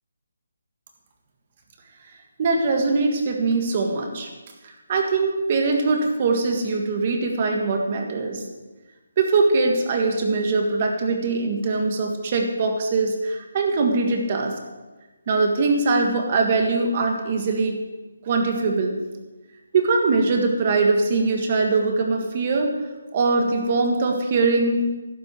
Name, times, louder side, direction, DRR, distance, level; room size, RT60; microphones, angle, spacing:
voice 1, 2.4-4.3 4.6-8.5 9.2-14.5 15.3-17.8 18.2-19.0 19.7-22.8 23.1-24.9, right 3 dB, 30° right, 3 dB, 1.6 m, -22 dB
12.0 x 6.7 x 9.3 m, 1.2 s
hypercardioid pair, 170°, 0 cm